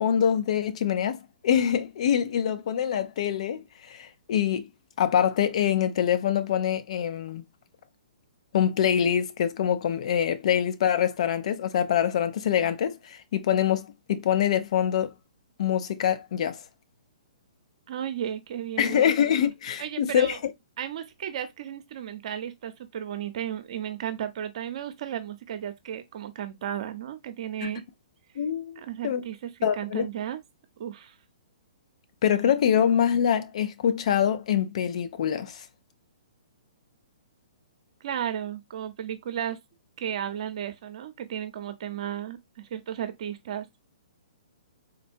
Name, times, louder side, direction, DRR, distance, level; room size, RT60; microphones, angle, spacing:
voice 1, 0.0-4.7 5.0-7.4 8.5-15.1 15.6-16.6 18.8-20.4 27.6-27.7 28.4-29.2 29.6-30.1 32.2-35.6, left 9 dB, 55° left, 0.5 m, -25 dB
voice 2, 17.9-19.1 19.8-20.4 20.8-27.8 28.8-30.4 30.8-31.1 38.0-39.6 40.0-43.8, right 10 dB, 55° right, 0.7 m, -34 dB
3.9 x 2.2 x 2.6 m
hypercardioid pair, 145°, 4 cm